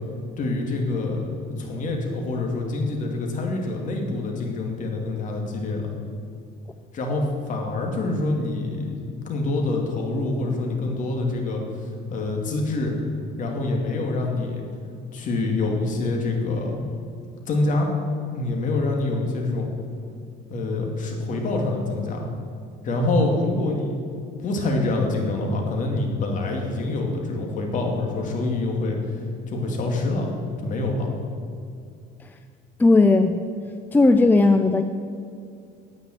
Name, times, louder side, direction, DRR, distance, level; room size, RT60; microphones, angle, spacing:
voice 1, 0.4-1.3 1.6-5.9 6.9-11.6 12.1-12.9 13.4-14.6 15.1-16.8 17.5-17.9 18.3-19.7 20.5-22.3 22.8-24.0 24.4-29.0 29.5-30.3 30.6-31.1, left 2 dB, 40° left, 1 dB, 2.5 m, -26 dB
voice 2, 32.8-33.4 33.9-34.8, left 3 dB, 10° left, 7 dB, 0.4 m, -16 dB
9.5 x 9.1 x 9.0 m, 2.4 s
cardioid pair, 135°, 19 cm